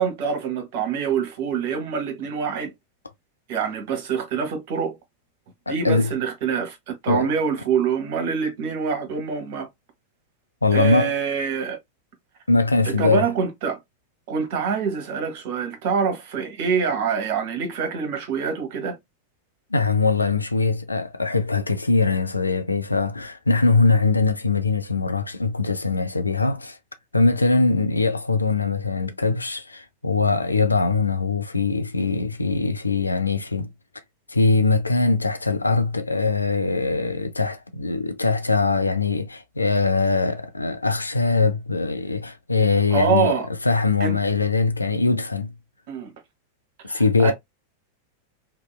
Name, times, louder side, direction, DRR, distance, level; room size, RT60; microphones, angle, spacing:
voice 1, 0.0-2.7 3.5-4.9 5.7-9.7 10.7-11.8 12.8-13.8 14.3-19.0 42.9-43.5 44.0-44.2 45.9-46.1 46.8-47.3, right 6 dB, 50° right, 0.9 m, -25 dB
voice 2, 5.7-6.1 7.1-7.3 10.6-11.1 12.5-13.3 19.7-26.8 27.1-33.7 34.3-43.3 43.6-45.5 46.8-47.3, left 3 dB, 80° left, 0.4 m, -22 dB
2.8 x 2.1 x 2.3 m
figure-of-eight pair, 90°, 0 cm